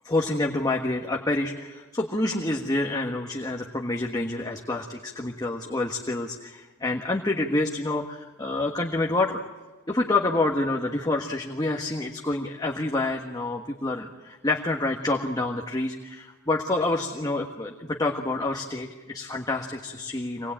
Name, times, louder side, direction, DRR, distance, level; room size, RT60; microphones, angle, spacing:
voice 1, 0.0-9.4 9.9-20.5, left 2 dB, 20° left, 0 dB, 1.4 m, -28 dB
25.0 x 20.0 x 8.8 m, 1.3 s
head